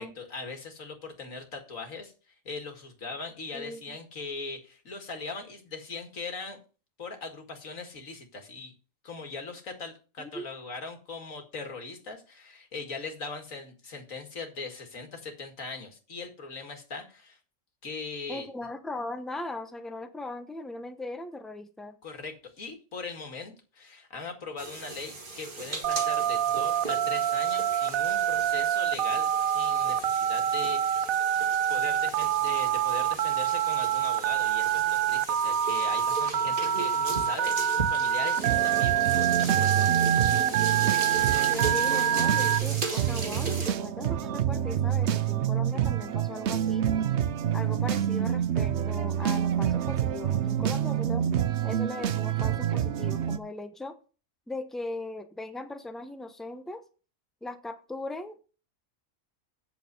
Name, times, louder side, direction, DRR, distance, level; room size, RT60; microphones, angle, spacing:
voice 1, 0.0-6.6 7.0-8.7 9.0-17.4 17.8-18.5 22.0-31.1 31.7-39.9, left 4 dB, 75° left, 4 dB, 2.5 m, -40 dB
voice 2, 3.5-4.0 10.2-10.4 18.3-22.0 41.5-46.9 47.5-51.2 51.6-54.0 54.5-56.8 57.4-58.4, left 2 dB, ahead, 8 dB, 0.8 m, -39 dB
sound 1, 24.6-43.7, right 4 dB, 40° right, 1.8 m, -38 dB
Telephone, 25.8-42.6, right 10 dB, 90° right, 1.1 m, -26 dB
sound 2, 38.4-53.4, right 9 dB, 60° right, 0.9 m, -28 dB
8.4 x 6.6 x 6.8 m, 0.36 s
omnidirectional pair, 1.4 m